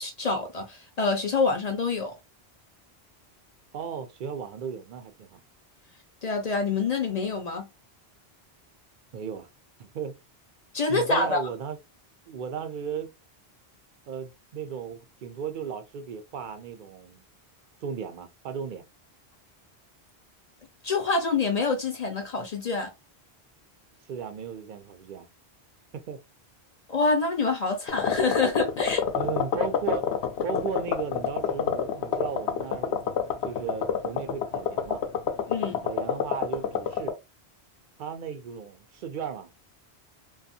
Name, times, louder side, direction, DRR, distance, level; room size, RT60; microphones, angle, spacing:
voice 1, 0.0-2.1 6.2-7.7 10.7-11.4 20.8-22.9 26.9-29.0 35.5-35.8, left 3 dB, 50° left, 0.5 m, -26 dB
voice 2, 3.7-5.4 9.1-9.5 9.8-10.2 10.9-11.8 12.3-13.1 14.1-17.2 17.8-18.8 24.1-25.3 25.9-26.2 29.1-30.1 30.4-33.0 33.4-35.0 35.8-37.2 38.0-39.5, right 7 dB, 60° right, 0.6 m, -35 dB
sound 1, 27.9-37.1, left 7 dB, 80° left, 0.8 m, -27 dB
2.5 x 2.3 x 2.6 m
omnidirectional pair, 1.1 m